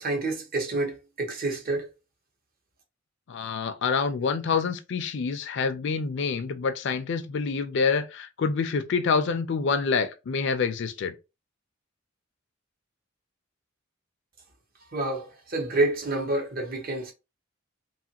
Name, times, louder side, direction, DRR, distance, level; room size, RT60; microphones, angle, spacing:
voice 1, 0.0-1.9 14.9-17.1, right 2 dB, 50° right, 0.9 m, -28 dB
voice 2, 3.3-11.1, left 5 dB, 65° left, 0.4 m, -27 dB
2.9 x 2.4 x 2.8 m
head